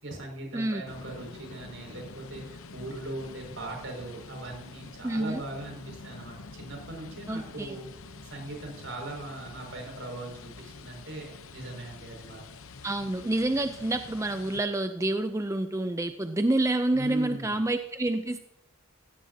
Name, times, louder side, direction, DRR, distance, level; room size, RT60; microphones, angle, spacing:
voice 1, 0.0-7.8 8.2-12.4 16.9-17.6, right 2 dB, 65° right, 0 dB, 5.7 m, -40 dB
on the hill over the city, 0.9-14.6, left 3 dB, 85° left, 0.8 m, -46 dB
voice 2, 5.0-5.4 7.3-7.8 12.8-18.4, right 2 dB, 15° right, 8 dB, 0.4 m, -28 dB
16.5 x 16.5 x 2.8 m, 0.89 s
head